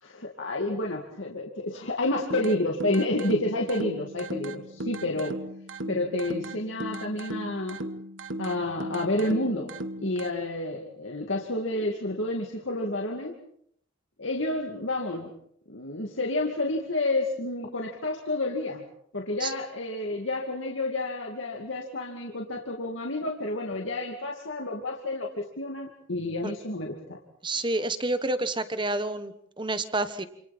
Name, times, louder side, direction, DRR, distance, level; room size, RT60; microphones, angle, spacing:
voice 1, 0.0-5.4 5.9-7.8 8.4-9.7 10.0-13.3 14.2-15.3 15.7-18.8 19.1-27.2, left 2 dB, 75° left, 0 dB, 2.5 m, -30 dB
sound 1, 2.3-10.3, right 1 dB, 75° right, 1.3 m, -37 dB
voice 2, 27.4-30.2, right 2 dB, 25° right, 11 dB, 1.3 m, -29 dB
28.5 x 27.5 x 4.4 m, 0.67 s
head